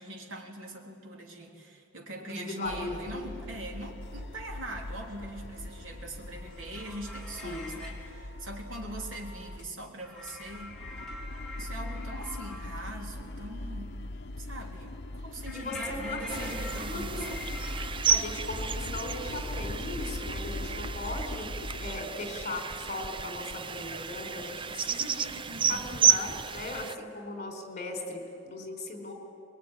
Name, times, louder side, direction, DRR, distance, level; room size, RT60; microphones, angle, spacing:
voice 1, 0.0-10.9 11.6-14.0 14.4-17.5 25.5-26.0, right 1 dB, 75° right, 1 dB, 3.5 m, -42 dB
voice 2, 2.3-3.3 7.4-7.8 15.5-16.5 16.8-17.4 18.1-21.5 21.8-29.1, left 2 dB, 40° left, 4 dB, 4.4 m, -38 dB
sound 1, 2.6-9.7 10.1-22.1, left 1 dB, 60° left, 0.9 m, -40 dB
sound 2, 6.5-8.1 10.0-12.8 15.5-17.9, left 3 dB, ahead, 4.1 m, -44 dB
sound 3, 16.3-26.9, right 7 dB, 25° right, 0.5 m, -32 dB
24.0 x 21.5 x 10.0 m, 2.5 s
head